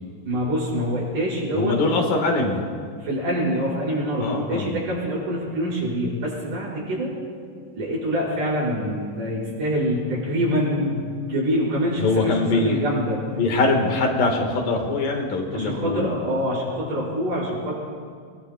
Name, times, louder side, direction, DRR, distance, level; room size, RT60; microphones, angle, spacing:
voice 1, 0.2-1.8 3.0-7.1 7.8-13.2 15.5-17.7, equal, 60° right, -5 dB, 6.9 m, -25 dB
voice 2, 1.5-2.6 4.2-4.8 12.0-12.8 13.3-16.1, left 3 dB, 70° left, 2 dB, 3.3 m, -22 dB
29.5 x 21.0 x 2.3 m, 2.1 s
omnidirectional pair, 4.2 m